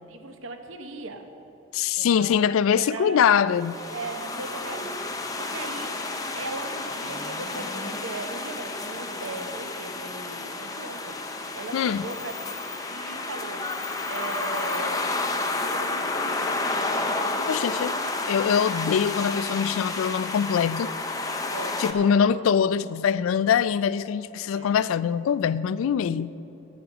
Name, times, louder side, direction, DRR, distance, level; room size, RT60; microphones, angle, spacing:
voice 1, 0.0-1.3 1.9-3.5 3.9-5.0 5.4-5.9 6.4-11.2 11.5-13.6 14.1-17.6 21.5-22.4 24.5-24.8, right 3 dB, 70° right, 0.8 m, -38 dB
voice 2, 1.7-3.8 11.7-12.1 17.5-17.9 18.3-20.9 21.8-26.3, left 7 dB, 75° left, 0.3 m, -23 dB
sound 1, 3.5-21.9, left 2 dB, 15° left, 0.6 m, -31 dB
10.0 x 8.4 x 7.0 m
head